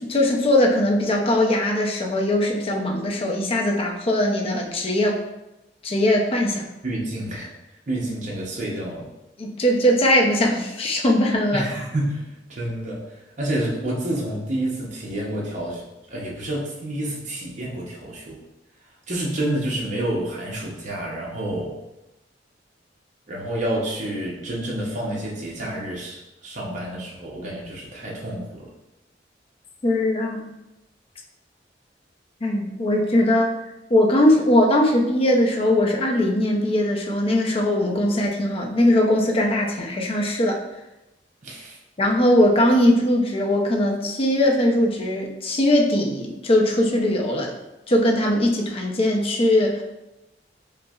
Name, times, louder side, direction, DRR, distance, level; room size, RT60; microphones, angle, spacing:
voice 1, 0.0-5.2 5.8-6.7 9.4-11.6 29.8-30.5 32.4-33.5 33.9-40.6 42.0-47.5 47.9-49.8, left 1 dB, 30° left, 0 dB, 0.5 m, -20 dB
voice 2, 6.8-7.5 7.9-9.1 11.5-18.4 19.1-21.8 23.3-28.7 41.4-41.8, right 1 dB, 45° right, -3 dB, 0.6 m, -29 dB
5.3 x 2.0 x 2.3 m, 0.95 s
head